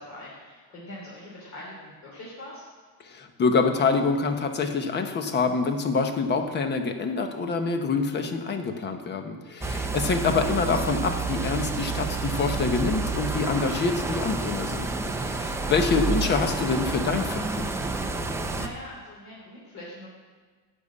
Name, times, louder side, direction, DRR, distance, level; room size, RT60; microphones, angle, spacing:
voice 1, 0.0-2.6 15.6-15.9 18.5-20.1, left 1 dB, 45° left, -6 dB, 3.4 m, -42 dB
voice 2, 3.0-14.9 15.2-17.7, left 4 dB, 30° left, 6 dB, 1.0 m, -26 dB
sound 1, 9.6-18.7, right 3 dB, 5° right, 0.5 m, -29 dB
12.0 x 5.5 x 8.4 m, 1.4 s
cardioid pair, 160°, 37 cm